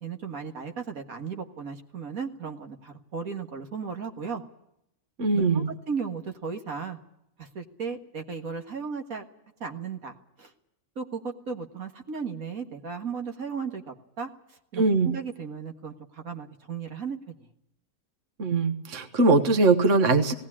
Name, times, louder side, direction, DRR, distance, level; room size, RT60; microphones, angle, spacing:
voice 1, 0.0-4.4 5.3-7.0 7.4-9.2 9.6-10.5 11.0-17.5, right 5 dB, 90° right, 4 dB, 2.2 m, -35 dB
voice 2, 5.2-5.7 14.8-15.1 18.4-20.3, right 3 dB, 65° right, 8 dB, 1.7 m, -21 dB
18.5 x 18.0 x 9.8 m, 0.81 s
omnidirectional pair, 1.4 m